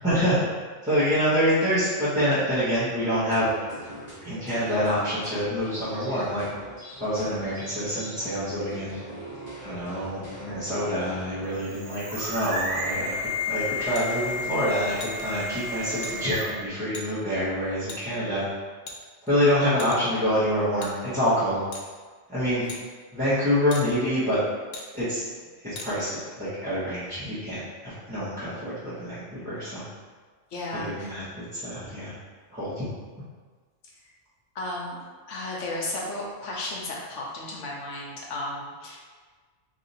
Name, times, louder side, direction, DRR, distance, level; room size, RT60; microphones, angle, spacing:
voice 1, 0.0-0.4 0.8-3.5 4.2-6.4 7.0-9.0 9.6-13.1 13.5-18.5 19.2-21.6 22.3-22.6 23.1-24.4 24.9-25.2 25.6-29.9 30.7-32.1 32.5-32.8, equal, 5° right, -16 dB, 1.2 m, -26 dB
sound 1, 3.3-11.6, right 1 dB, 30° left, 1.3 m, -42 dB
sound 2, 11.4-16.7, left 2 dB, 50° right, 1.0 m, -31 dB
sound 3, 13.9-14.1 15.0-15.2 16.0-16.1 16.9-17.1 17.9-18.0 18.9-19.3 19.8-20.2 20.8-20.9 21.7-21.9 22.7-22.8 23.7-23.9 24.7-24.9 25.8-25.9, left 2 dB, 60° left, 0.5 m, -38 dB
voice 2, 30.5-31.1 34.5-35.0 35.3-39.0, left 2 dB, 75° left, -3 dB, 1.1 m, -34 dB
3.2 x 2.7 x 4.0 m, 1.5 s
omnidirectional pair, 1.3 m